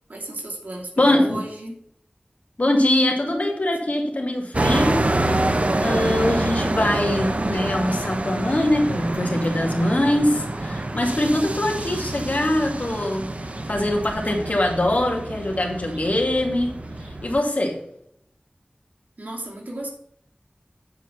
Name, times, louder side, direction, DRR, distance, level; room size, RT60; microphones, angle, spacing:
voice 1, 0.1-1.7 19.2-19.9, right 1 dB, 80° right, -1 dB, 2.6 m, -34 dB
voice 2, 1.0-1.4 2.6-5.1 5.8-13.3 13.7-16.8 17.2-17.8, left 1 dB, 60° left, 1 dB, 2.4 m, -22 dB
sound 1, 4.5-17.4, right 2 dB, 50° right, 0.8 m, -27 dB
9.1 x 5.1 x 5.8 m, 0.72 s
wide cardioid pair, 45°, 3 cm